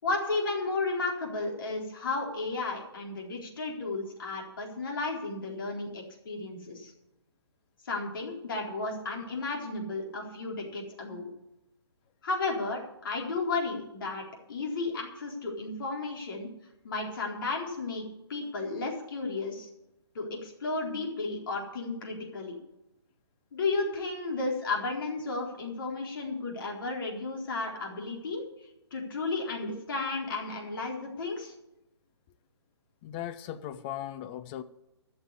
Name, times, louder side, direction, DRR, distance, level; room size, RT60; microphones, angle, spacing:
voice 1, 0.0-6.9 7.8-11.3 12.2-16.5 16.8-19.7 20.1-22.6 23.5-28.5 28.9-31.5, left 3 dB, 50° left, -1 dB, 4.1 m, -33 dB
voice 2, 33.0-34.6, left 11 dB, 25° left, 10 dB, 0.6 m, -38 dB
14.0 x 6.7 x 8.5 m, 0.90 s
figure-of-eight pair, 130°, 14 cm